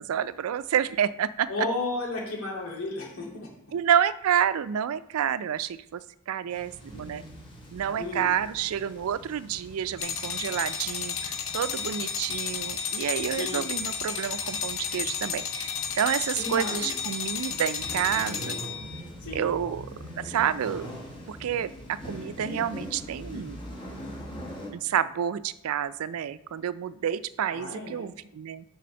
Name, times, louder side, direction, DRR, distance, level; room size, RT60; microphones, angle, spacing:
voice 1, 0.0-1.5 3.7-6.0 6.3-7.2 7.7-11.2 11.5-15.7 16.0-18.6 19.3-19.8 20.2-20.9 21.3-23.6 24.7-28.6, right 9 dB, 85° right, 15 dB, 0.4 m, -29 dB
voice 2, 1.5-3.5 8.0-8.3 13.3-13.6 16.4-16.9 19.2-19.4 27.5-28.1, left 2 dB, 90° left, -2 dB, 2.3 m, -33 dB
sound 1, 6.5-24.7, equal, 25° left, 1.3 m, -43 dB
sound 2, 10.0-19.0, left 6 dB, 70° left, 0.7 m, -32 dB
6.8 x 4.0 x 6.3 m, 0.76 s
head